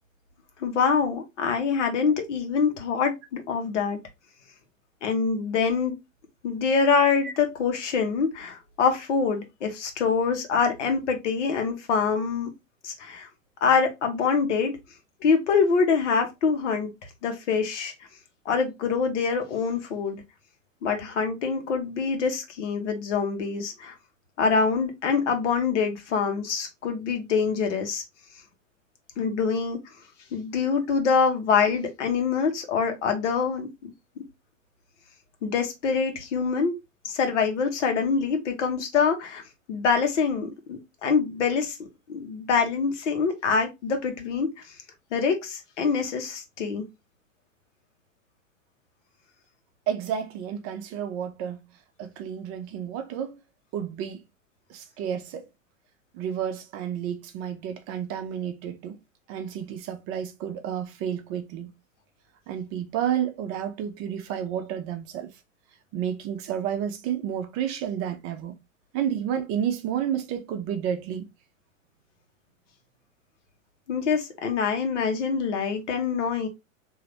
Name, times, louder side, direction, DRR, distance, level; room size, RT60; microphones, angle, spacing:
voice 1, 0.6-4.0 5.0-6.0 6.4-12.5 12.8-13.3 13.6-14.8 15.2-17.9 18.4-20.2 20.8-23.9 24.4-28.0 29.2-29.8 30.3-33.9 34.2-34.3 35.4-36.7 37.0-39.4 39.7-44.5 45.1-46.9 73.9-76.5, left 5 dB, 60° left, 1.2 m, -25 dB
voice 2, 49.9-51.6 52.0-53.4 53.7-54.2 54.7-55.4 56.1-59.0 59.3-61.7 62.5-65.3 65.9-68.6 68.9-71.3, right 9 dB, 35° right, 0.7 m, -31 dB
3.8 x 2.8 x 3.2 m
figure-of-eight pair, 100°, 40 cm